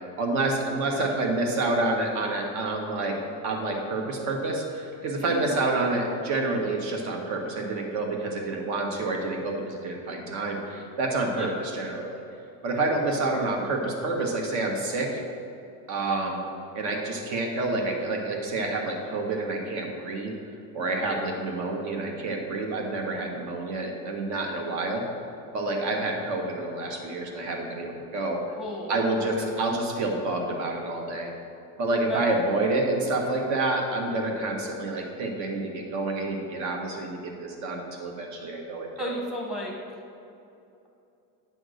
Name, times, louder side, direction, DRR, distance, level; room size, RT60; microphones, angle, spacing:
voice 1, 0.2-3.2 3.4-12.2 12.6-15.2 15.9-16.4 16.7-20.3 20.7-25.0 25.5-28.4 28.9-31.3 31.8-39.1, right 2 dB, 45° right, 1 dB, 1.3 m, -28 dB
voice 2, 28.6-29.0 29.4-29.5 32.1-32.3 39.0-39.7, equal, ahead, -2 dB, 1.1 m, -34 dB
9.2 x 3.5 x 6.4 m, 2.7 s
supercardioid pair, 150°, 41 cm